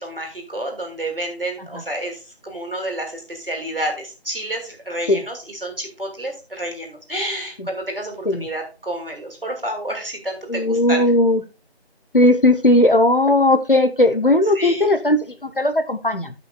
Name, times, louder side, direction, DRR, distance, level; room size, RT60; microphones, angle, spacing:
voice 1, 0.0-11.0 14.6-15.0, right 1 dB, 60° right, 3 dB, 2.6 m, -29 dB
voice 2, 10.5-11.4 12.1-16.3, left 1 dB, 55° left, 10 dB, 1.0 m, -17 dB
17.0 x 5.8 x 2.3 m, 0.31 s
figure-of-eight pair, 180°, 31 cm